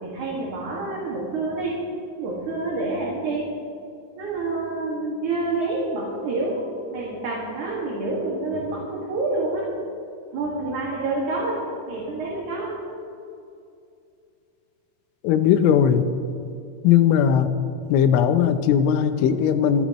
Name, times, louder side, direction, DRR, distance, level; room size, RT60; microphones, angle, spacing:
voice 1, 0.0-1.8 2.2-3.5 4.2-9.7 10.3-12.8, right 2 dB, 50° right, -4 dB, 2.8 m, -28 dB
voice 2, 15.2-16.0 16.8-17.5 17.9-19.9, left 9 dB, 85° left, 10 dB, 3.2 m, -18 dB
27.5 x 11.5 x 3.1 m, 2.5 s
omnidirectional pair, 5.4 m